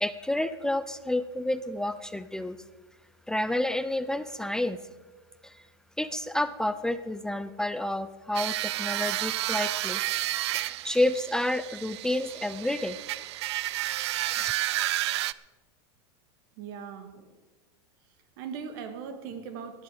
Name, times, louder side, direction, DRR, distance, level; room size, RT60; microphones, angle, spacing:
voice 1, 0.0-2.6 3.3-4.8 5.4-5.6 6.0-10.0 10.5-13.0 14.3-14.5, left 1 dB, 5° left, 12 dB, 0.4 m, -30 dB
sound 1, 8.3-15.3, right 15 dB, 75° right, 0.5 m, -31 dB
voice 2, 16.6-17.4 18.4-19.8, right 6 dB, 55° right, 9 dB, 1.8 m, -39 dB
17.5 x 10.5 x 5.0 m, 1.2 s
supercardioid pair, 150°, 14 cm